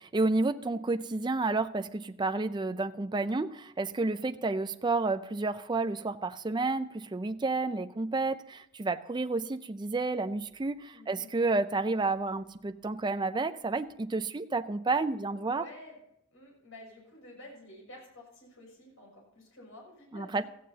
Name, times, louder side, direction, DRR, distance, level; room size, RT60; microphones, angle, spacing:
voice 1, 0.1-15.6 20.1-20.4, right 3 dB, 20° right, 10 dB, 0.4 m, -30 dB
voice 2, 10.9-11.3 15.2-16.0 16.3-20.5, left 1 dB, 70° left, -1 dB, 6.3 m, -51 dB
17.0 x 14.5 x 2.8 m, 0.80 s
head